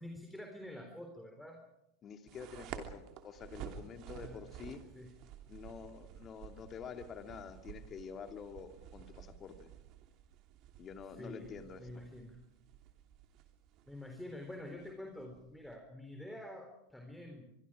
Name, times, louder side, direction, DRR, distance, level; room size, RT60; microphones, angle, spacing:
voice 1, 0.0-1.6 4.2-4.4 5.0-5.1 11.2-11.5 11.8-12.4 13.9-17.5, left 1 dB, 5° left, 3 dB, 3.8 m, -47 dB
voice 2, 2.0-4.8 5.5-9.7 10.8-12.0, left 6 dB, 35° left, 6 dB, 2.6 m, -48 dB
sound 1, 2.3-15.8, right 9 dB, 50° right, 3.0 m, -52 dB
25.0 x 24.0 x 5.0 m, 0.83 s
hypercardioid pair, 90°, 0 cm